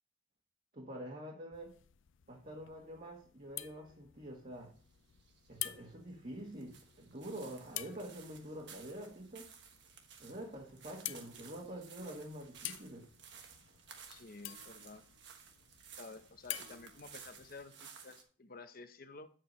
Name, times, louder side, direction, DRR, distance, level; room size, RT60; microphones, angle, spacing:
voice 1, 0.7-1.7 2.3-4.7 5.5-9.5 10.2-13.1, right 1 dB, 40° right, -2 dB, 1.4 m, -46 dB
sound 1, 1.5-17.7, left 14 dB, 65° left, 0.5 m, -50 dB
sound 2, 4.5-18.2, right 7 dB, 55° right, 1.3 m, -56 dB
voice 2, 14.1-15.0 15.9-19.3, left 3 dB, 45° left, 9 dB, 0.8 m, -52 dB
8.8 x 7.7 x 3.2 m, 0.42 s
head